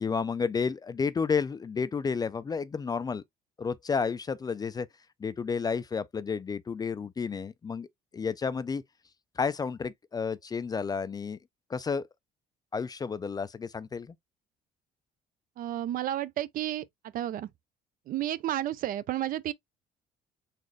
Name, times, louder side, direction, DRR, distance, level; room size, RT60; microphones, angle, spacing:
voice 1, 0.0-3.2 3.6-4.9 5.2-7.9 8.1-8.8 9.4-11.4 11.7-12.1 12.7-14.1, left 5 dB, 25° left, 0.3 m, -31 dB
voice 2, 15.6-16.8 17.1-17.5 18.1-19.5, right 12 dB, 55° right, 0.4 m, -31 dB
4.1 x 2.4 x 3.1 m
cardioid pair, 110°, 17 cm